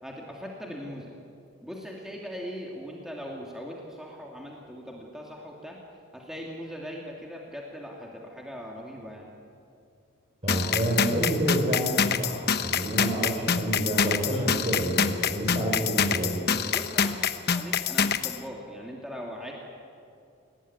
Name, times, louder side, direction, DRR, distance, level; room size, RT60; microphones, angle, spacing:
voice 1, 0.0-1.1 1.6-5.8 6.1-9.3 16.7-19.5, equal, ahead, -2 dB, 2.6 m, -40 dB
voice 2, 10.4-16.3, right 1 dB, 30° right, -3 dB, 5.6 m, -28 dB
sound 1, 10.5-18.4, left 7 dB, 45° left, 1.0 m, -26 dB
29.5 x 19.5 x 9.8 m, 2.5 s
head